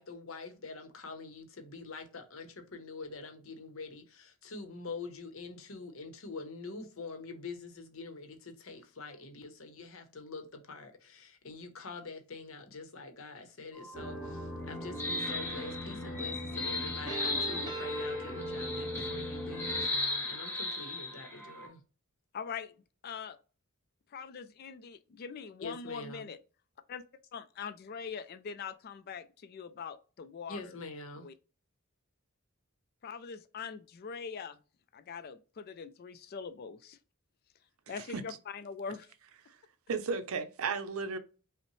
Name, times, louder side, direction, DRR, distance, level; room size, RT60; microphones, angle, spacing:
voice 1, 0.0-21.8 25.6-26.3 30.5-31.3, left 3 dB, 65° left, 0.8 m, -45 dB
sound 1, 13.8-21.7, left 2 dB, 10° left, 0.9 m, -37 dB
sound 2, 13.9-19.9, equal, 20° right, 1.1 m, -39 dB
voice 2, 22.3-22.7 23.0-23.4 24.1-26.4 26.9-27.0 27.3-30.8 31.2-31.3 33.0-34.6 34.9-37.0 37.9-39.1, left 6 dB, 45° left, 0.3 m, -42 dB
voice 3, 39.9-41.2, right 5 dB, 75° right, 0.5 m, -33 dB
5.3 x 2.1 x 3.0 m
head